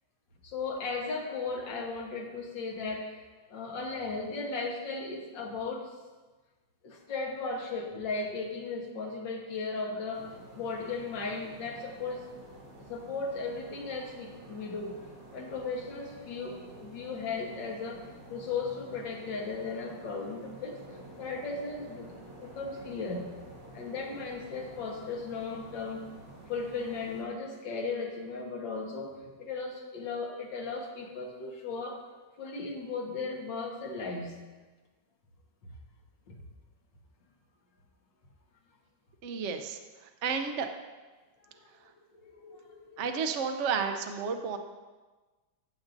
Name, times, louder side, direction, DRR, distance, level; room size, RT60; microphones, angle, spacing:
voice 1, 0.4-3.2 3.5-5.9 6.8-10.3 10.6-12.3 12.9-15.0 15.3-18.0 18.3-20.8 21.2-22.1 22.4-23.2 23.7-26.0 26.5-32.0 32.4-34.3 35.6-35.7 36.3-36.4 42.2-43.0, left 4 dB, 75° left, -1 dB, 2.0 m, -36 dB
sound 1, 10.1-27.2, right 1 dB, 40° right, 2.2 m, -50 dB
voice 2, 39.2-39.8 40.2-40.7 43.0-44.6, right 6 dB, 65° right, 6 dB, 0.7 m, -31 dB
15.5 x 7.3 x 2.6 m, 1.3 s
omnidirectional pair, 2.0 m